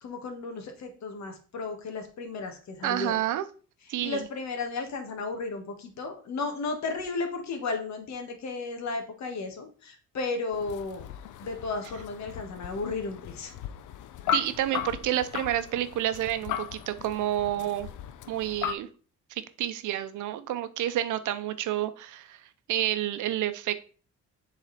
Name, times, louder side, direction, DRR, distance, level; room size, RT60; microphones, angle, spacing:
voice 1, 0.0-3.1 4.0-11.1 11.4-13.5, left 3 dB, 65° left, 5 dB, 1.6 m, -34 dB
voice 2, 2.8-3.5 3.9-4.2 14.3-17.9 18.3-18.9 19.3-22.4 22.7-23.7, right 12 dB, 80° right, 12 dB, 0.7 m, -29 dB
sound 1, 10.5-18.8, left 10 dB, 80° left, 0.6 m, -37 dB
7.1 x 4.1 x 4.1 m, 0.40 s
cardioid pair, 90°, 30 cm